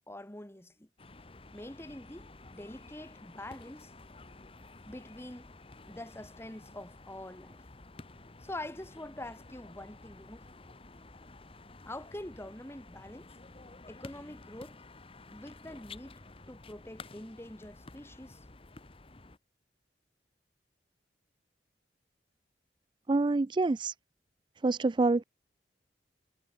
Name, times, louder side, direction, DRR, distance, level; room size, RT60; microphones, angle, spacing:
voice 1, 0.1-0.9 1.5-3.9 4.9-5.6 5.9-7.6 8.4-10.5 11.9-13.4 13.9-14.8 15.3-16.2 16.5-18.5, left 1 dB, 15° left, 1.7 m, -45 dB
sound 1, 1.0-19.4, left 3 dB, 30° left, 1.3 m, -52 dB
voice 2, 23.1-23.9 24.6-25.2, right 3 dB, 25° right, 0.4 m, -26 dB
head